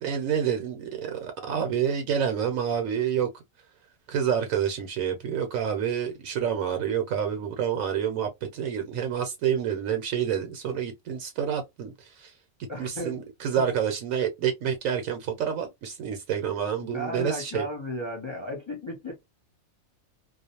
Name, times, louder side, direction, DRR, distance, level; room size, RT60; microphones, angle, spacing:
voice 1, 0.0-3.3 4.1-12.3 12.8-17.7, right 8 dB, 75° right, 1.0 m, -28 dB
voice 2, 12.7-13.2 13.6-13.7 16.8-19.1, left 1 dB, 50° left, 0.3 m, -34 dB
2.4 x 2.1 x 2.7 m
omnidirectional pair, 1.5 m